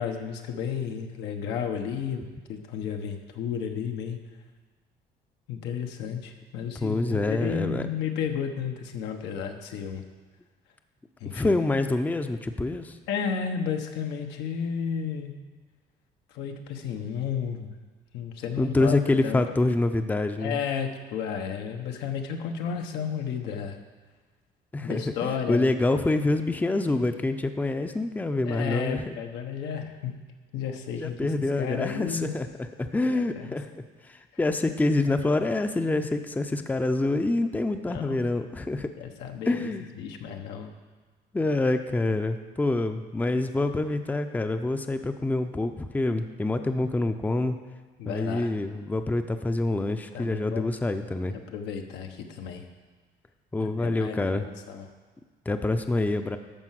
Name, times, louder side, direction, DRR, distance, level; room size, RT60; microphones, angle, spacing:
voice 1, 0.0-2.2 2.5-4.2 5.5-10.0 11.2-11.6 13.1-15.4 16.3-17.7 18.1-19.0 19.2-19.4 20.4-23.8 24.8-25.7 28.4-30.2 30.5-31.2 31.6-32.3 33.0-33.5 36.0-36.1 37.8-38.3 39.0-39.7 39.9-40.7 48.0-48.5 50.1-50.7 51.3-52.6 53.8-54.9, left 7 dB, 85° left, 4 dB, 1.2 m, -32 dB
voice 2, 6.8-7.8 11.3-12.9 18.6-20.6 24.7-29.1 30.9-32.5 32.8-38.9 39.5-39.9 41.3-47.6 48.1-51.4 53.5-54.5 55.5-56.4, left 2 dB, 10° left, 8 dB, 0.6 m, -26 dB
12.5 x 4.5 x 7.6 m, 1.4 s
cardioid pair, 110°, 17 cm